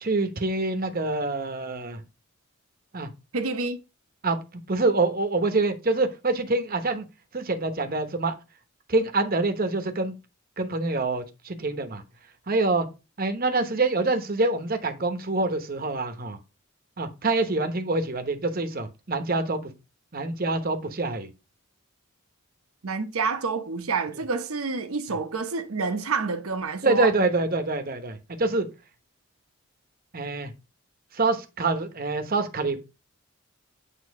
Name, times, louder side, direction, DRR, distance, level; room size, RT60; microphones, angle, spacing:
voice 1, 0.0-2.0 2.9-3.1 4.2-4.4 4.7-7.1 7.3-8.3 8.9-10.1 10.6-12.0 12.5-12.9 13.2-16.4 17.0-19.7 20.1-21.3 26.8-28.7 30.1-30.5 31.1-32.8, right 3 dB, 40° right, 0.9 m, -26 dB
voice 2, 3.3-3.8 22.8-27.1, right 4 dB, 80° right, 0.9 m, -28 dB
8.4 x 2.9 x 4.7 m
head